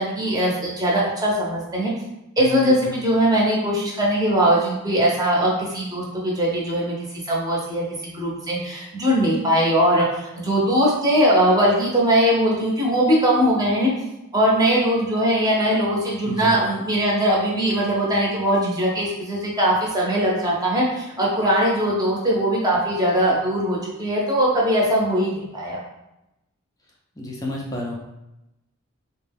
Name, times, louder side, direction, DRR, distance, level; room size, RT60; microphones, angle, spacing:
voice 1, 0.0-1.9 2.4-6.9 7.3-13.9 14.3-25.8, equal, 15° right, -4 dB, 0.7 m, -20 dB
voice 2, 2.4-3.0 16.2-16.6 27.2-28.0, left 1 dB, 15° left, -2 dB, 0.4 m, -31 dB
3.8 x 2.2 x 3.4 m, 0.92 s
head